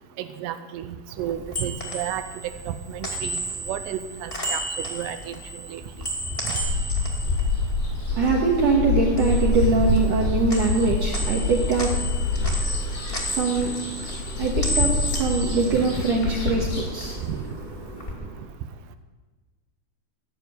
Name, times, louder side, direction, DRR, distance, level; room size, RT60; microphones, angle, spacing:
voice 1, 0.2-4.6 4.9-5.3 5.7-5.8 6.5-6.6 17.2-17.4, right 10 dB, 85° right, 10 dB, 2.5 m, -32 dB
sound 1, 1.2-8.5 8.8-10.2 10.5-16.5 16.8-18.1, equal, 20° left, 1.7 m, -33 dB
sound 2, 6.6-17.2, left 3 dB, 90° left, 6.6 m, -26 dB
voice 2, 8.1-17.5 17.8-18.5, right 4 dB, 65° right, -2 dB, 2.3 m, -24 dB
15.0 x 6.9 x 9.5 m, 1.3 s
omnidirectional pair, 5.2 m